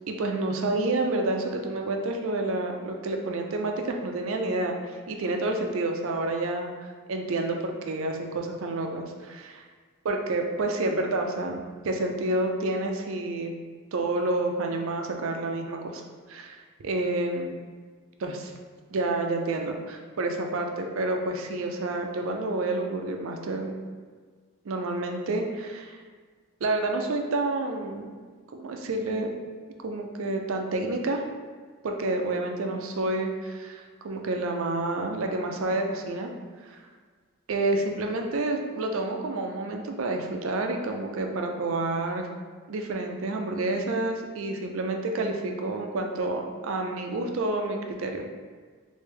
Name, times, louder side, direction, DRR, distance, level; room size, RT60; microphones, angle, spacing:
voice 1, 0.1-9.6 10.0-13.5 13.9-16.0 16.3-17.5 18.2-18.5 18.9-23.8 24.7-26.0 26.6-28.1 28.6-29.3 29.8-31.2 31.8-36.3 36.7-36.8 37.5-42.3 42.7-48.2, right 2 dB, 70° right, 3 dB, 0.4 m, -29 dB
3.2 x 2.6 x 3.3 m, 1.5 s
head